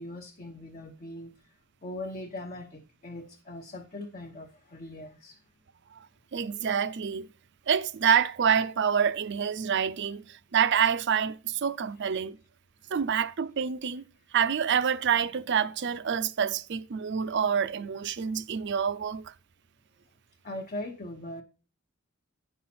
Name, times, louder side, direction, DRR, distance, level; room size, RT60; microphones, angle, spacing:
voice 1, 0.0-1.3 1.8-5.4 20.4-21.4, left 1 dB, 40° left, 0.8 m, -40 dB
voice 2, 6.3-7.3 7.7-12.4 12.9-14.0 14.3-19.3, right 7 dB, 55° right, 0.5 m, -27 dB
9.4 x 5.6 x 4.3 m
head